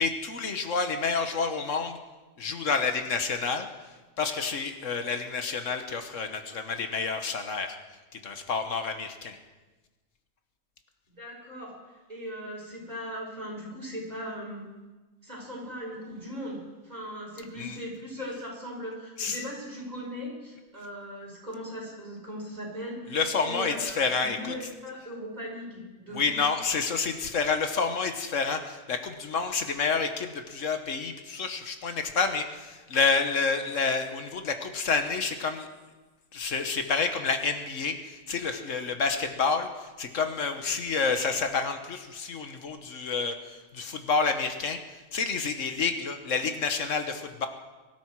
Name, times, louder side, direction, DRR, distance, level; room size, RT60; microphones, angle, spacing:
voice 1, 0.0-2.0 2.4-3.7 4.2-7.8 8.2-9.4 17.6-17.8 19.2-19.4 23.1-24.5 26.1-35.7 36.3-44.8 45.1-47.5, left 5 dB, 75° left, 7 dB, 1.6 m, -29 dB
voice 2, 11.2-11.8 12.1-14.6 15.2-23.2 23.4-26.5, equal, 30° right, -4 dB, 5.5 m, -39 dB
23.5 x 12.5 x 4.7 m, 1.2 s
omnidirectional pair, 1.3 m